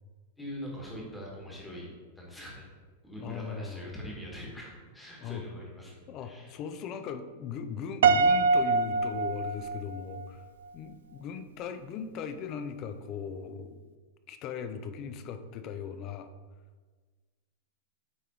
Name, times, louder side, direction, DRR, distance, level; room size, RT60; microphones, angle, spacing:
voice 1, 0.4-2.7 3.0-6.5, equal, 5° left, -3 dB, 1.3 m, -43 dB
voice 2, 3.2-3.9 5.2-5.4 6.1-10.4 10.7-13.8 14.3-16.3, left 7 dB, 25° left, 9 dB, 0.4 m, -38 dB
Piano, 8.0-10.3, right 4 dB, 75° right, 0.3 m, -24 dB
8.4 x 3.5 x 4.6 m, 1.4 s
supercardioid pair, 175°, 0 cm